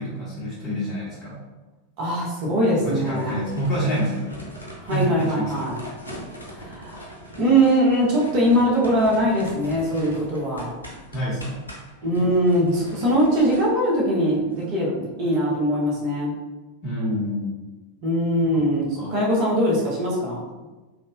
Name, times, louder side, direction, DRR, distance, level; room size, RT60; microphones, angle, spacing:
voice 1, 0.0-1.4 2.8-4.4 4.9-5.7 11.1-11.7 12.2-12.3 12.6-12.8 16.8-17.6 18.5-18.6 18.9-19.2, equal, 35° left, -7 dB, 1.4 m, -28 dB
voice 2, 2.0-3.4 4.8-5.8 6.7-7.0 7.4-10.7 12.0-16.4 18.0-20.4, equal, 45° right, -5 dB, 1.0 m, -21 dB
sound 1, 3.0-14.6, equal, 90° right, 0.7 m, -41 dB
3.6 x 2.6 x 2.4 m, 1.2 s
figure-of-eight pair, 90°, 0 cm